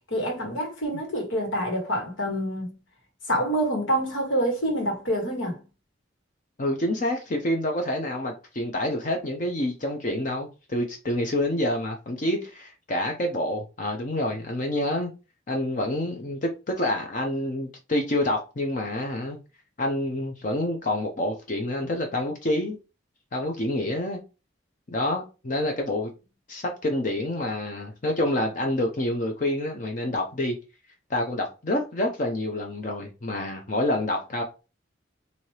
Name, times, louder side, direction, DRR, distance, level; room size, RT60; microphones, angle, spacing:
voice 1, 0.1-2.7 3.3-5.6, equal, 90° left, 1.6 m, -26 dB
voice 2, 6.6-15.1 15.5-19.4 19.8-22.8 23.3-24.2 24.9-26.1 26.5-30.6 31.1-34.4, left 1 dB, 40° left, 0.6 m, -27 dB
4.3 x 2.7 x 3.1 m
head